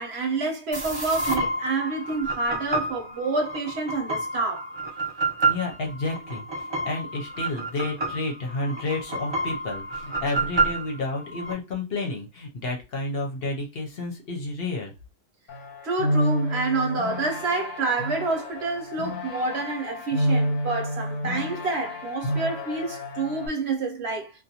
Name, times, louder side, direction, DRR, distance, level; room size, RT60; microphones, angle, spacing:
voice 1, 0.0-4.7 15.8-24.3, right 3 dB, 60° right, 0.9 m, -28 dB
sound 1, 0.7-11.5, right 2 dB, 35° right, 0.4 m, -29 dB
voice 2, 5.4-14.9, left 2 dB, 55° left, 0.9 m, -31 dB
sound 2, 15.5-23.5, equal, 80° left, 1.0 m, -29 dB
2.5 x 2.2 x 2.7 m
omnidirectional pair, 1.3 m